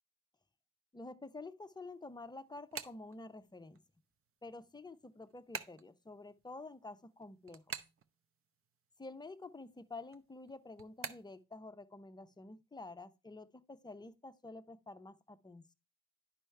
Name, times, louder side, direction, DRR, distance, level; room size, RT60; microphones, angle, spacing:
voice 1, 0.9-3.8 4.4-7.8 9.0-15.7, left 3 dB, 15° left, 0.7 m, -49 dB
sound 1, 1.9-3.8 4.2-8.9 9.1-11.4, right 7 dB, 45° right, 0.8 m, -47 dB
9.7 x 5.6 x 3.3 m
cardioid pair, 90°, 30 cm